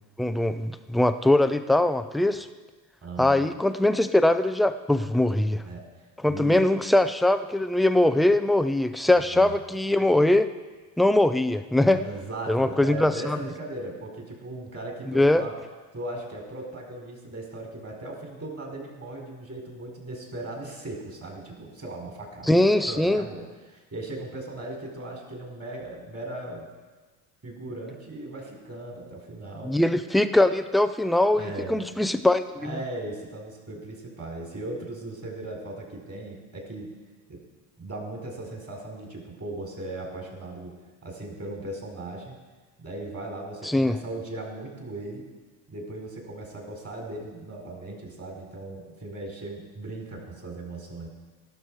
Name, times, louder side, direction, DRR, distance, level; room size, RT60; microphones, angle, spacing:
voice 1, 0.2-2.5 3.2-5.6 6.2-10.5 11.0-12.0 12.5-13.4 15.1-15.4 22.5-23.2 29.6-32.8 43.6-44.0, left 1 dB, ahead, 10 dB, 0.4 m, -22 dB
voice 2, 3.0-3.5 5.6-5.9 6.3-6.6 9.2-9.5 11.8-15.5 15.9-26.7 27.4-29.8 31.3-31.8 32.6-36.9 37.3-37.4 37.8-40.7 41.0-42.4 42.8-45.2 45.7-51.1, right 2 dB, 30° right, 0 dB, 4.5 m, -38 dB
18.0 x 6.7 x 4.7 m, 1.3 s
figure-of-eight pair, 55°, 49 cm